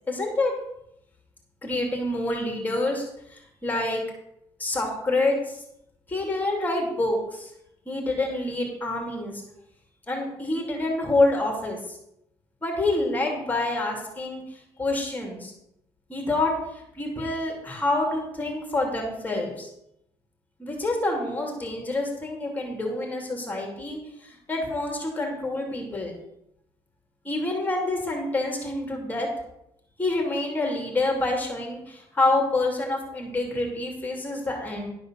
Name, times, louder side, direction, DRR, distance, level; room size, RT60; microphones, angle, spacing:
voice 1, 0.1-0.5 1.6-4.0 4.6-5.6 6.1-7.5 7.9-9.4 10.1-12.0 12.6-14.4 14.8-15.5 16.1-19.7 20.6-26.1 27.2-29.3 30.0-34.9, left 2 dB, 15° left, 1 dB, 2.8 m, -27 dB
11.5 x 5.4 x 6.3 m, 0.80 s
cardioid pair, 110°, 10 cm